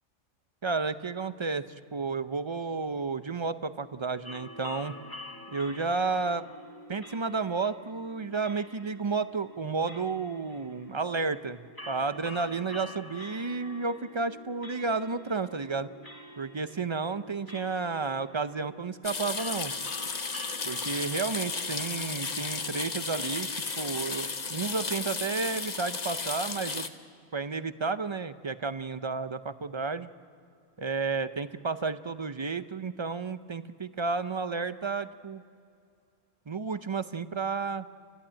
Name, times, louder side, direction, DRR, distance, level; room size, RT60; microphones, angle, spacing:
voice 1, 0.6-1.6 1.9-4.9 5.5-6.4 6.9-15.9 16.4-19.7 20.7-23.5 23.8-26.9 27.3-30.1 30.8-35.4 36.5-37.9, right 4 dB, 40° right, 12 dB, 0.4 m, -32 dB
sound 1, 4.2-24.1, left 1 dB, 15° left, 2.1 m, -47 dB
sound 2, 19.0-26.9, left 4 dB, 35° left, 1.0 m, -34 dB
29.0 x 14.5 x 8.9 m, 2.4 s
omnidirectional pair, 1.3 m